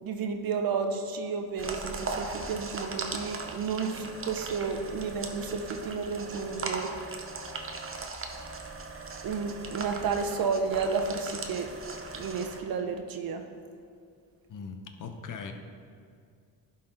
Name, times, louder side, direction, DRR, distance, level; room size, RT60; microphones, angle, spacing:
voice 1, 0.0-6.9 9.2-11.7 12.2-13.4, right 5 dB, 60° right, 6 dB, 0.8 m, -32 dB
sound 1, 1.6-12.6, right 3 dB, 35° right, 0.9 m, -38 dB
voice 2, 14.5-15.5, left 5 dB, 55° left, 6 dB, 0.8 m, -40 dB
11.5 x 4.2 x 3.9 m, 2.3 s
cardioid pair, 80°, 39 cm